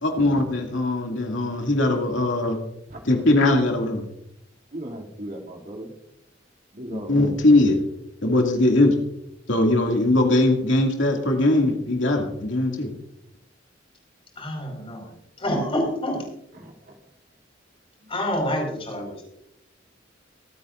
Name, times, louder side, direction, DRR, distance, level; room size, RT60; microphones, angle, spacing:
voice 1, 0.0-2.6 3.0-4.0 6.9-7.8 8.2-9.0 9.5-12.9, left 2 dB, 85° left, 1 dB, 2.4 m, -20 dB
voice 2, 4.7-5.9 6.7-7.1 16.5-16.9 18.0-18.1, right 1 dB, 50° right, 0 dB, 2.8 m, -37 dB
voice 3, 14.4-15.1 15.4-16.2 18.1-19.2, left 1 dB, 30° left, 1 dB, 5.2 m, -27 dB
24.5 x 9.1 x 2.6 m, 0.80 s
head